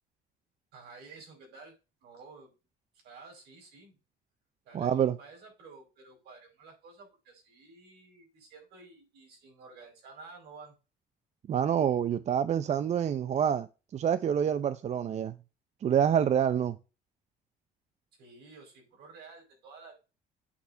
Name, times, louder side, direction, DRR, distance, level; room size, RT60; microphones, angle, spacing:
voice 1, 0.7-2.5 3.0-4.0 4.6-10.7 18.2-19.9, right 4 dB, 75° right, 5.3 m, -52 dB
voice 2, 4.7-5.2 11.5-15.3 15.8-16.8, right 8 dB, 40° right, 0.5 m, -27 dB
8.5 x 4.2 x 5.5 m
cardioid pair, 110°, 17 cm